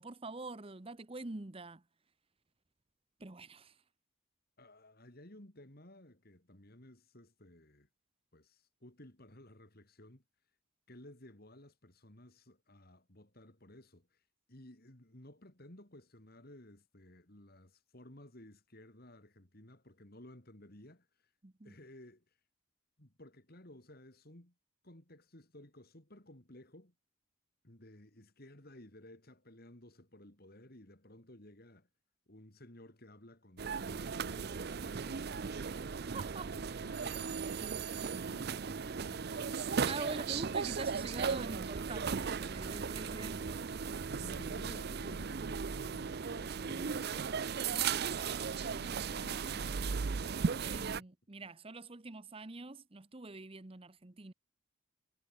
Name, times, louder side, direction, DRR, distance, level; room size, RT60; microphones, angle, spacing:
voice 1, 0.0-1.8 3.2-3.8 21.4-21.7 36.1-36.5 39.9-43.6 50.6-54.3, right 3 dB, 25° right, 0.8 m, -45 dB
voice 2, 4.6-7.9 8.3-10.2 10.9-21.3 21.6-22.4 23.0-24.5 24.8-26.9 27.6-31.9 32.3-35.6 36.3-40.4 44.0-50.9, left 1 dB, 45° left, 3.1 m, -56 dB
sound 1, 33.6-51.0, right 6 dB, 50° right, 0.5 m, -36 dB
head